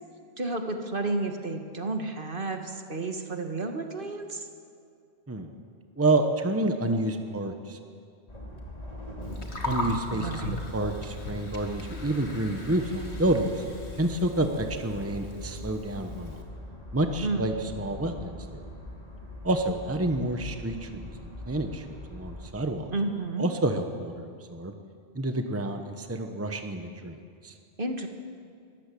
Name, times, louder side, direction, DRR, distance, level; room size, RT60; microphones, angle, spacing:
voice 1, 0.4-4.5 10.1-10.6 17.2-17.7 22.9-23.5 27.8-28.1, right 2 dB, 55° right, 5 dB, 1.8 m, -31 dB
voice 2, 6.0-7.8 9.6-13.5 14.0-16.4 16.9-18.6 19.4-22.9 23.4-24.7 25.1-27.2 27.4-27.5, right 1 dB, 15° right, 6 dB, 1.1 m, -29 dB
sound 1, 8.3-22.5, left 1 dB, 35° left, 3.0 m, -41 dB
Gurgling, 9.2-16.4, left 1 dB, 85° left, 2.5 m, -39 dB
22.5 x 14.5 x 8.5 m, 2.3 s
omnidirectional pair, 1.1 m